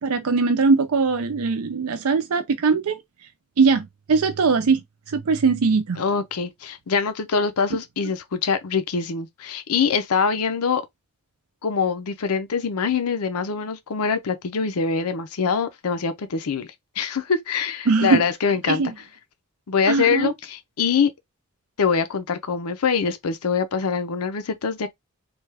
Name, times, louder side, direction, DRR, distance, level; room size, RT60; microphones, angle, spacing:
voice 1, 0.0-3.0 3.6-4.8 5.1-6.0 17.9-18.2 18.7-18.9 19.9-20.3, right 4 dB, 80° right, 0.5 m, -20 dB
voice 2, 6.0-10.8 11.6-16.7 17.0-18.8 19.7-21.1 21.8-24.9, left 5 dB, 85° left, 0.6 m, -24 dB
3.3 x 2.3 x 3.3 m
head